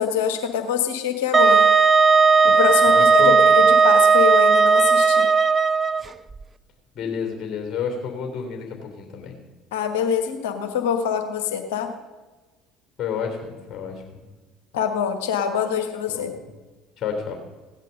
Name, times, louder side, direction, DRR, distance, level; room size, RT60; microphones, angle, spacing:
voice 1, 0.0-1.7 2.4-5.3 9.7-11.9 14.7-16.3, left 8 dB, 75° left, 7 dB, 1.4 m, -24 dB
Wind instrument woodwind instrument, 1.3-6.0, right 5 dB, 25° right, 0.6 m, -15 dB
voice 2, 2.9-3.3 6.9-9.3 13.0-14.2 16.1-16.3 17.0-17.3, left 6 dB, 45° left, 2 dB, 3.3 m, -30 dB
16.5 x 10.5 x 5.2 m, 1.2 s
hypercardioid pair, 60°, 0 cm